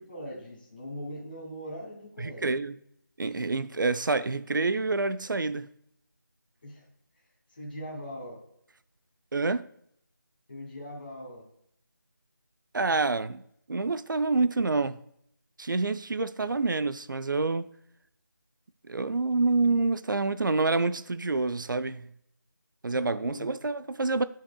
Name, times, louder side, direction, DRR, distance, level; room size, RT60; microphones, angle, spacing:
voice 1, 0.0-2.6 6.6-6.8 7.5-8.4 10.5-11.5 22.9-23.5, equal, 30° left, 2.4 m, -41 dB
voice 2, 2.2-2.8 3.2-5.7 9.3-9.7 12.7-13.4 13.7-15.0 15.6-17.7 18.9-22.1 22.8-24.2, right 3 dB, 70° right, 0.5 m, -27 dB
11.0 x 5.9 x 2.2 m
figure-of-eight pair, 180°, 11 cm